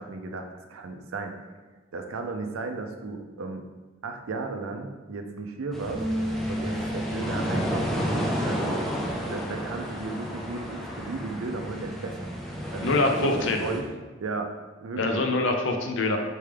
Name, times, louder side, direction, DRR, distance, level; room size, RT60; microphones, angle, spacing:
voice 1, 0.0-1.5 1.9-3.6 4.0-6.0 6.5-8.9 9.2-12.3 12.7-13.9 14.2-14.5 14.8-15.2, right 3 dB, 90° right, 4 dB, 0.5 m, -34 dB
sound 1, 5.7-13.8, equal, ahead, 0.5 m, -32 dB
sound 2, 5.9-10.5 10.8-12.2, equal, 15° right, 1.0 m, -36 dB
voice 2, 12.8-13.6 15.0-16.2, left 2 dB, 65° left, 4 dB, 0.5 m, -24 dB
4.4 x 3.4 x 3.3 m, 1.2 s
head